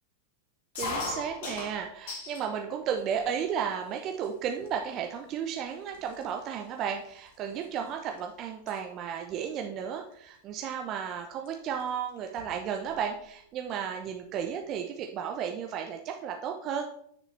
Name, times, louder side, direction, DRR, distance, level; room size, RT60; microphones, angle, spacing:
sound 1, 0.8-2.5 2.9-3.6 4.2-4.3 4.6-5.0 5.6-5.7 5.9-8.2 8.5-8.8 10.1-10.4 11.5-11.6 11.8-11.9 12.2-13.0, left 3 dB, 55° left, 2.1 m, -39 dB
voice 1, 0.8-16.9, right 8 dB, 35° right, 4 dB, 0.8 m, -34 dB
10.0 x 6.6 x 3.3 m, 0.69 s
figure-of-eight pair, 90°, 0 cm